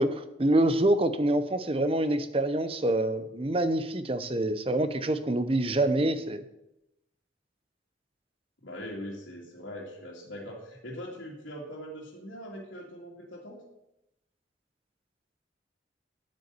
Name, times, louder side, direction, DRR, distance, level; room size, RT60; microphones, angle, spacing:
voice 1, 0.0-6.4, right 1 dB, 30° right, 11 dB, 0.7 m, -26 dB
voice 2, 8.6-13.6, equal, 85° left, -6 dB, 2.3 m, -41 dB
9.8 x 8.2 x 6.8 m, 0.88 s
head